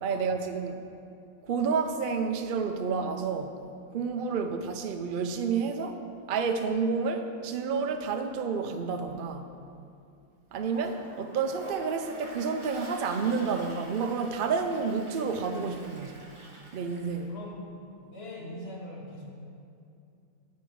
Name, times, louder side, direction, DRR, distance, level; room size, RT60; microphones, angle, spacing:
voice 1, 0.0-0.8 1.4-3.5 3.9-6.0 6.3-9.5 10.5-16.1 16.7-17.3, right 5 dB, 55° right, 6 dB, 0.6 m, -30 dB
Toilet flush, 10.5-17.3, right 1 dB, 25° right, 1.0 m, -47 dB
voice 2, 17.3-17.7 18.0-19.3, left 1 dB, 45° left, -2 dB, 1.7 m, -42 dB
9.6 x 8.5 x 4.6 m, 2.5 s
omnidirectional pair, 1.5 m